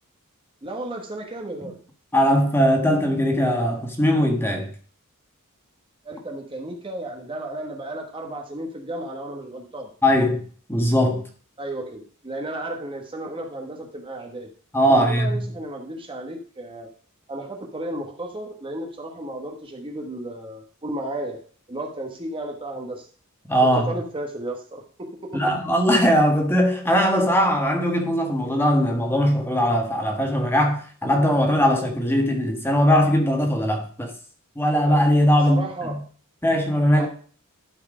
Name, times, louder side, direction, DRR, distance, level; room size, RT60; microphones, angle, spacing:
voice 1, 0.6-1.8 6.0-9.9 11.6-14.5 14.9-16.9 17.3-21.4 21.7-23.1 23.6-25.5 35.5-36.0 37.0-37.1, right 1 dB, 25° right, 1.3 m, -33 dB
voice 2, 2.1-4.7 10.0-10.4 10.7-11.2 14.7-15.4 23.5-23.9 25.3-34.1 34.5-36.0 36.4-37.1, equal, 10° left, 1.4 m, -20 dB
12.0 x 4.6 x 4.9 m
head